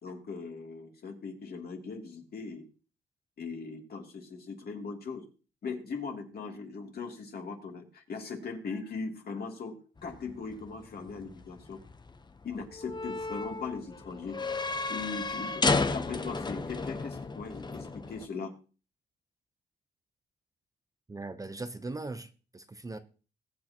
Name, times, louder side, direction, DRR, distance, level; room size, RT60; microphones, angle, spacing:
voice 1, 0.0-2.7 3.4-5.2 5.6-9.7 10.0-11.8 12.4-14.3 14.9-15.6 15.9-18.5, left 4 dB, 50° left, 2.9 m, -39 dB
sound 1, 10.0-18.3, left 3 dB, 20° left, 0.9 m, -34 dB
voice 2, 21.1-23.0, right 3 dB, 15° right, 0.8 m, -39 dB
21.0 x 8.3 x 3.0 m
cardioid pair, 90°, 20 cm